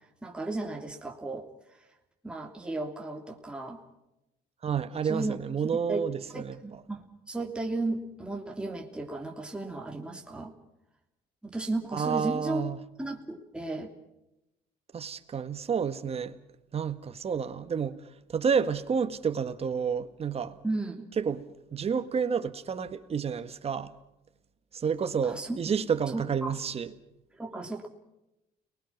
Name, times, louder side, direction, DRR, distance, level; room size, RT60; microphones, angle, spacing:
voice 1, 0.2-1.5 2.2-3.8 5.1-5.4 5.7-10.5 11.4-12.6 13.0-13.9 20.6-21.1 25.2-25.6 26.1-26.5 27.4-27.9, right 2 dB, 5° right, 3.0 m, -34 dB
voice 2, 4.6-6.6 11.9-12.8 14.9-16.4 16.7-18.0 18.3-20.6 21.2-21.5 21.7-23.9 24.7-26.9, right 6 dB, 35° right, 1.7 m, -30 dB
30.0 x 20.5 x 6.0 m
cardioid pair, 110°, 17 cm